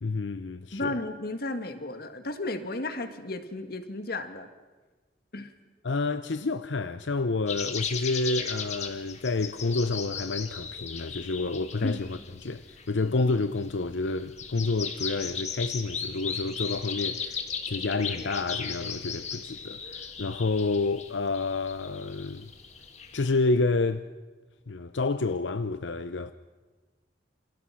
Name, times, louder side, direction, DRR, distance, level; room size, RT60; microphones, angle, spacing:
voice 1, 0.0-1.0 5.8-17.4 17.7-22.5 23.1-24.1 24.7-26.3, left 3 dB, 80° left, 0.7 m, -29 dB
voice 2, 0.7-4.5 5.3-5.5 11.8-12.2, left 2 dB, 55° left, 1.9 m, -34 dB
sound 1, 7.5-23.2, left 6 dB, 40° left, 1.9 m, -37 dB
29.0 x 27.0 x 5.9 m
head